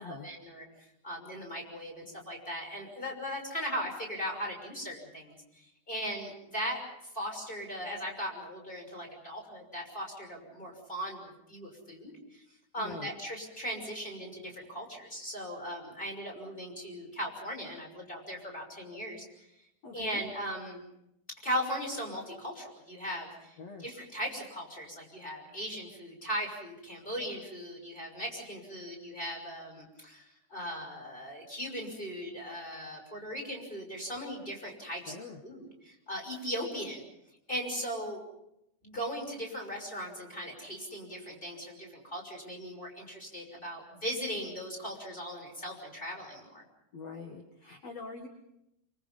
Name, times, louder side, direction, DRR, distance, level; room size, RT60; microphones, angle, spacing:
voice 1, 0.0-6.8 7.1-12.4 12.7-19.2 19.9-20.8 21.3-30.2 30.5-37.0 37.5-38.2 38.8-46.6, equal, 10° left, 1 dB, 6.1 m, -38 dB
voice 2, 12.8-13.1 19.8-20.2 23.6-23.9 35.1-35.4 46.9-48.3, left 4 dB, 55° left, 4 dB, 1.8 m, -44 dB
27.5 x 25.0 x 5.6 m, 0.84 s
omnidirectional pair, 5.7 m